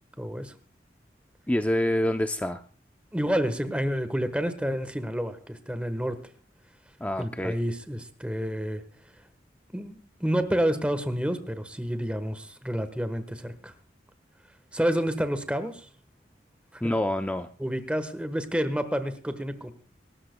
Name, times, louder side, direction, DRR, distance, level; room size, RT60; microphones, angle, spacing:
voice 1, 0.2-0.5 3.1-6.2 7.2-8.8 9.7-13.7 14.7-15.9 16.7-16.9 17.6-19.7, equal, 5° right, 10 dB, 1.2 m, -29 dB
voice 2, 1.5-2.6 7.0-7.6 16.8-17.5, left 1 dB, 10° left, 7 dB, 0.5 m, -26 dB
26.0 x 13.0 x 2.2 m, 0.43 s
head